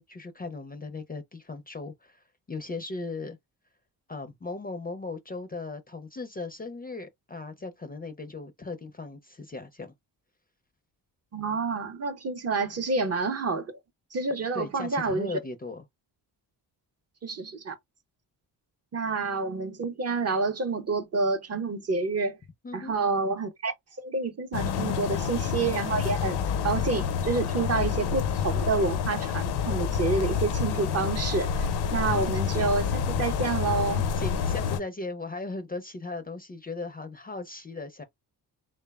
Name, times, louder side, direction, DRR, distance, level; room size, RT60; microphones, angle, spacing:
voice 1, 0.0-3.4 4.1-9.9 14.5-15.8 22.6-22.9 34.2-38.0, left 3 dB, 25° left, 0.4 m, -37 dB
voice 2, 11.3-13.7 14.1-15.3 17.2-17.7 18.9-22.4 22.7-26.4 26.6-34.0, right 4 dB, 40° right, 0.6 m, -28 dB
sound 1, 24.5-34.8, left 7 dB, 70° left, 0.5 m, -28 dB
3.0 x 2.0 x 2.2 m
cardioid pair, 75°, 42 cm